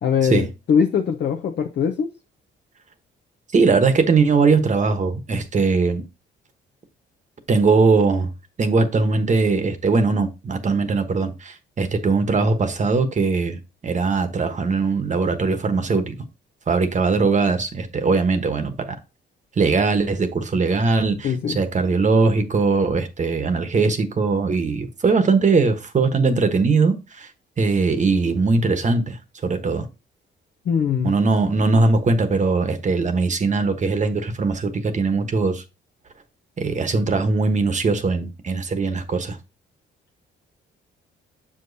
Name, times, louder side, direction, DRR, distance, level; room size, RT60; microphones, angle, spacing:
voice 1, 0.0-2.1 21.2-21.6 30.7-31.2, left 7 dB, 60° left, 0.8 m, -21 dB
voice 2, 3.5-6.0 7.5-8.3 8.6-16.1 16.7-18.9 19.6-27.3 27.6-29.2 29.4-29.9 31.0-35.6 36.6-39.4, right 4 dB, 40° right, 1.1 m, -20 dB
7.1 x 5.0 x 2.7 m
cardioid pair, 90°, 20 cm